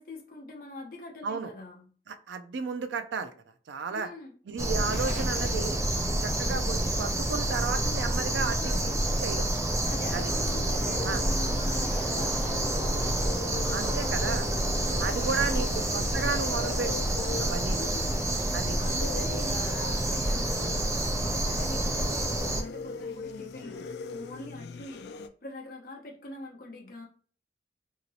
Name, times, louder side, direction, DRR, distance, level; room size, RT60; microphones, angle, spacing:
voice 1, 0.0-1.9 3.9-4.3 8.4-9.0 9.8-14.9 15.3-16.0 17.6-18.3 18.8-27.1, left 2 dB, 55° left, -1 dB, 0.8 m, -44 dB
voice 2, 2.1-3.3 3.7-4.1 4.5-5.8 6.2-9.5 10.1-10.3 11.0-11.2 13.7-14.5 15.0-17.1 17.4-17.9 18.5-18.8, right 5 dB, 90° right, 9 dB, 0.4 m, -33 dB
sound 1, 4.6-22.6, right 1 dB, 15° right, 0.4 m, -28 dB
Explosion, 4.9-10.4, equal, 40° right, 0.7 m, -40 dB
sound 2, 9.8-25.3, left 4 dB, 70° left, 0.3 m, -41 dB
2.9 x 2.9 x 2.7 m, 0.42 s
head